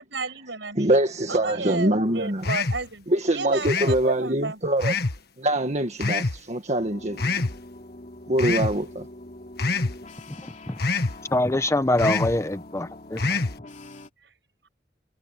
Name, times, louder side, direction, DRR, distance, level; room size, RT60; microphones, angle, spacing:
voice 1, 0.0-1.0 1.3-3.1 3.3-4.6 14.2-14.3, right 3 dB, 75° right, 6.5 m, -32 dB
voice 2, 0.8-2.5 3.1-5.0 5.4-7.3 8.3-9.1, right 1 dB, 40° right, 1.7 m, -24 dB
sound 1, 2.4-2.9 3.6-4.0 4.8-5.2 6.0-6.4 7.2-7.5 8.4-8.8 9.6-10.0 10.8-11.2 12.0-12.4 13.2-13.6, left 3 dB, 60° left, 1.7 m, -25 dB
sound 2, 6.8-14.1, left 2 dB, 45° left, 3.0 m, -44 dB
voice 3, 11.3-13.4, left 1 dB, 15° left, 0.7 m, -24 dB
head